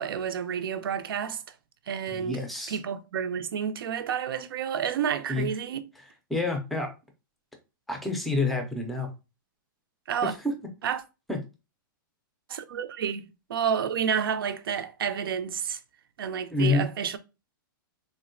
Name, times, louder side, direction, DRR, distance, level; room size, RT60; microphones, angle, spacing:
voice 1, 0.0-1.4 1.9-2.4 2.7-5.8 10.1-10.3 10.8-11.0 12.5-15.8 16.2-17.2, right 8 dB, 90° right, 0.4 m, -30 dB
voice 2, 2.1-2.8 5.3-5.5 6.3-6.9 7.9-9.1 10.2-10.5 11.3-11.4 16.5-16.9, left 3 dB, ahead, 0.4 m, -28 dB
3.5 x 2.1 x 2.5 m
hypercardioid pair, 160°, 12 cm